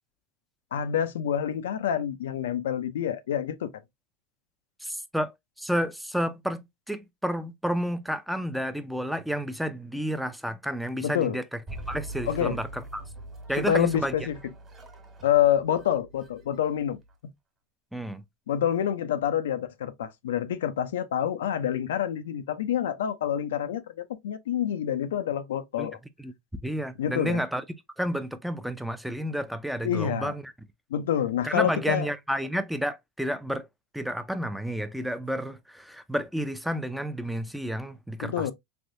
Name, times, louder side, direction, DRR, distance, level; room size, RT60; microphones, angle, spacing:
voice 1, 0.7-3.7 11.0-11.4 12.3-12.6 13.6-14.4 15.2-17.3 18.5-26.0 27.0-27.4 29.8-30.3 30.9-32.1 38.2-38.5, left 10 dB, 90° left, 0.4 m, -27 dB
voice 2, 4.8-5.3 5.6-11.6 11.9-13.0 13.5-14.1 17.9-18.2 25.8-25.9 26.2-26.3 26.6-27.6 28.0-30.5 31.4-33.7 33.9-38.5, equal, ahead, 0.4 m, -31 dB
sound 1, 11.7-17.1, right 2 dB, 25° right, 1.3 m, -43 dB
3.4 x 2.6 x 2.5 m
supercardioid pair, 110°, 0 cm